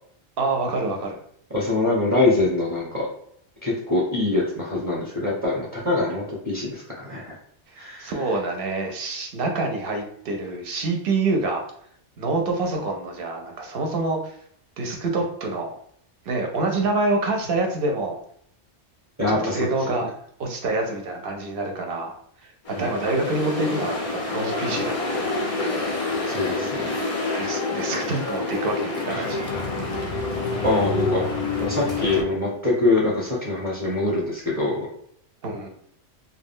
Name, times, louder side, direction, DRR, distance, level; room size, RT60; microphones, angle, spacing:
voice 1, 0.4-1.2 7.7-11.6 12.2-14.3 14.8-15.7 16.3-18.2 19.3-20.1 20.4-22.1 22.4-25.4 27.3-29.4 35.4-35.7, right 2 dB, 60° right, 2 dB, 0.7 m, -26 dB
voice 2, 1.5-3.1 3.6-6.8 7.1-7.3 7.7-8.1 19.2-20.0 22.7-22.9 26.3-26.9 29.1-29.3 30.6-31.2 31.6-34.7, left 2 dB, 20° right, -5 dB, 0.7 m, -24 dB
sound 1, 22.7-32.2, left 3 dB, 65° left, 0.3 m, -27 dB
2.3 x 2.1 x 3.5 m, 0.67 s
omnidirectional pair, 1.2 m